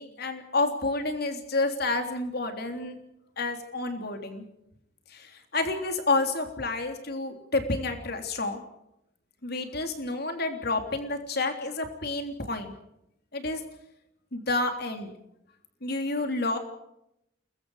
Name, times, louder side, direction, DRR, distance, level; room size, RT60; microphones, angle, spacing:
voice 1, 0.0-3.0 3.4-4.4 5.1-8.6 9.4-12.7 13.3-13.6 14.3-15.1 15.8-16.6, left 2 dB, 55° left, 6 dB, 3.4 m, -29 dB
29.0 x 22.0 x 5.0 m, 0.80 s
head